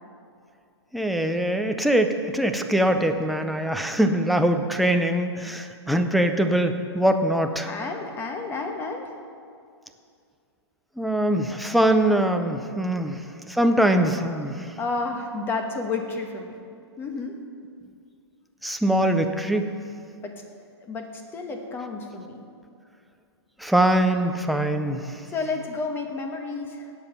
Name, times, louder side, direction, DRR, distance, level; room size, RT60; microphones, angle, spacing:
voice 1, 0.9-7.7 11.0-14.7 18.6-19.7 23.6-25.2, right 1 dB, ahead, 5 dB, 0.4 m, -23 dB
voice 2, 7.6-9.1 14.8-16.7 17.0-17.4 20.2-20.4 20.8-22.4 25.3-26.9, left 3 dB, 15° left, 4 dB, 1.1 m, -31 dB
17.5 x 7.1 x 5.6 m, 2.3 s
hypercardioid pair, 150°, 15 cm